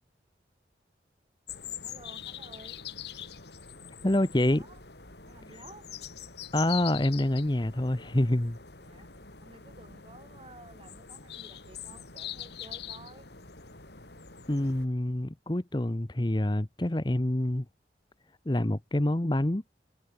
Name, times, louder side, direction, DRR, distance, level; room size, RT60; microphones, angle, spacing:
sound 1, 1.5-14.9, left 9 dB, 70° left, 3.8 m, -44 dB
voice 1, 1.8-2.8 4.0-4.8 5.3-5.9 8.8-13.3, right 2 dB, 30° right, 4.8 m, -53 dB
voice 2, 4.0-4.6 6.5-8.6 14.5-17.7 18.4-19.6, left 1 dB, 25° left, 0.9 m, -27 dB
head